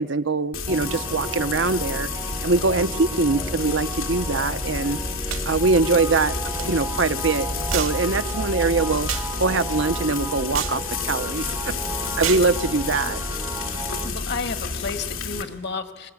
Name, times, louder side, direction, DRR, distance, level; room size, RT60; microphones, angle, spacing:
voice 1, 0.0-2.1 2.4-5.0 5.5-9.1 9.4-11.7 12.2-13.2, right 3 dB, 60° right, 11 dB, 0.8 m, -23 dB
Frying (food), 0.5-15.4, left 4 dB, 80° left, 2.8 m, -30 dB
sound 1, 0.7-14.1, right 3 dB, 15° right, 0.7 m, -35 dB
sound 2, 5.3-5.5 6.6-6.7 7.7-8.0 9.1-9.3 10.5-10.8 12.2-12.5, right 8 dB, 85° right, 2.1 m, -28 dB
voice 2, 14.0-16.1, left 4 dB, 55° left, 8 dB, 1.6 m, -31 dB
24.0 x 21.0 x 9.5 m, 1.3 s
head